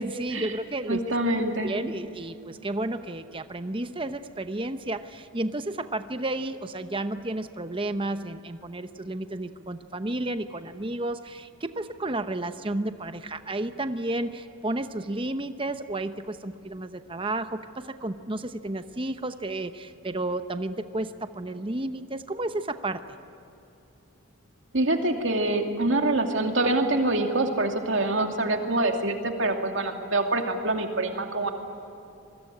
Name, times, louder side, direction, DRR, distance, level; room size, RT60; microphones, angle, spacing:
voice 1, 0.0-1.2 1.6-23.0, right 2 dB, 25° right, 9 dB, 0.8 m, -32 dB
voice 2, 0.9-1.7 24.7-31.5, right 2 dB, 60° right, 4 dB, 2.6 m, -25 dB
26.5 x 22.0 x 9.9 m, 2.8 s
head